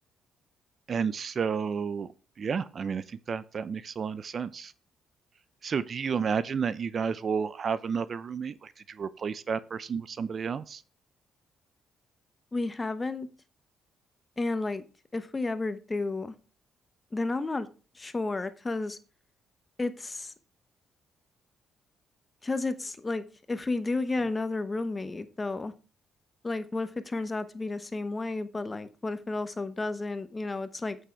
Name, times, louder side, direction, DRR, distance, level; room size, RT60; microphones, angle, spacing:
voice 1, 0.9-2.1 2.4-4.7 5.6-10.8, right 6 dB, 45° right, 0.6 m, -31 dB
voice 2, 12.5-13.3 14.4-14.8 15.1-16.3 17.1-17.7 17.9-19.0 19.8-20.3 22.4-25.7 26.4-31.0, left 3 dB, 25° left, 1.0 m, -32 dB
8.1 x 6.4 x 4.5 m
cardioid pair, 90°, 0 cm